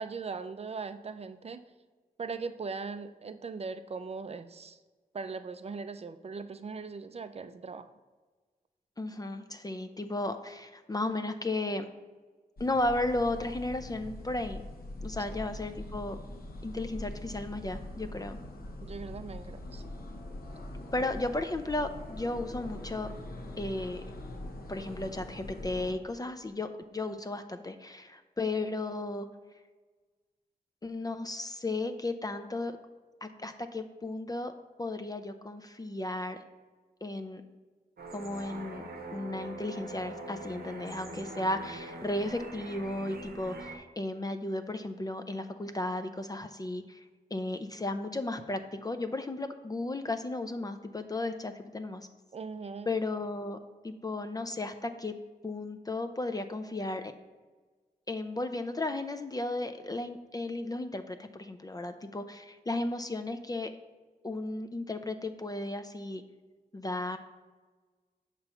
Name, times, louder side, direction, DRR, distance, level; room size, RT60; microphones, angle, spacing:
voice 1, 0.0-1.7 2.2-4.8 5.1-7.9 15.3-15.4 18.8-19.8 52.3-52.9, right 4 dB, 45° right, 11 dB, 0.4 m, -39 dB
voice 2, 9.0-11.9 12.6-14.6 15.0-16.2 16.6-18.4 20.9-23.1 23.6-24.0 24.7-29.3 30.8-32.7 33.2-34.5 34.8-36.4 37.0-37.4 38.1-38.8 39.1-47.0 47.3-52.1 52.9-53.6 53.8-55.1 55.4-57.1 58.1-63.7 64.2-66.2 66.7-67.2, left 2 dB, 25° left, 8 dB, 0.4 m, -34 dB
sound 1, 12.6-25.9, left 1 dB, 75° left, 0.8 m, -43 dB
sound 2, 38.0-43.8, right 2 dB, 90° right, 0.7 m, -43 dB
6.5 x 3.0 x 5.7 m, 1.3 s
wide cardioid pair, 95°, 15 cm